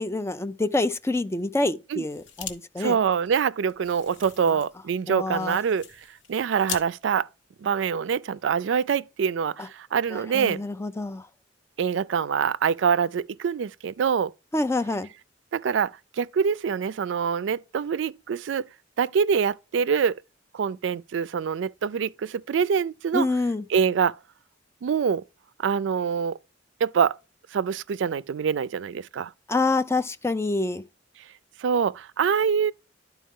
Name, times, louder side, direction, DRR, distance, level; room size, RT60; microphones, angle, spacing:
voice 1, 0.0-3.0 5.1-5.6 9.6-9.7 10.1-11.3 14.5-15.1 23.1-23.6 29.5-30.8, left 2 dB, 15° left, 0.5 m, -27 dB
sound 1, 2.1-2.6 2.9-3.0 3.3-6.9, left 7 dB, 75° left, 1.1 m, -40 dB
voice 2, 2.8-5.8 6.3-7.3 7.6-10.6 11.8-14.3 15.5-18.6 19.0-20.2 20.5-23.3 23.7-24.2 24.8-25.2 25.6-26.4 26.8-27.2 27.5-29.3 31.6-32.7, right 6 dB, 75° right, 0.4 m, -25 dB
11.5 x 4.6 x 3.6 m
head